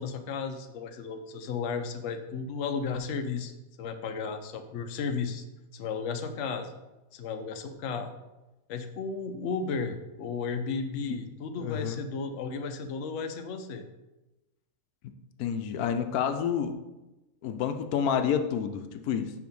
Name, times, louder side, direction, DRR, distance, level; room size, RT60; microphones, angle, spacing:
voice 1, 0.0-3.5 3.8-5.4 5.7-6.7 7.1-8.1 8.7-13.9, left 5 dB, 60° left, 6 dB, 0.9 m, -34 dB
voice 2, 11.6-12.0 15.0-15.1 15.4-16.8 17.4-19.3, left 8 dB, 85° left, 7 dB, 1.1 m, -29 dB
6.1 x 4.8 x 5.3 m, 1.0 s
omnidirectional pair, 1.5 m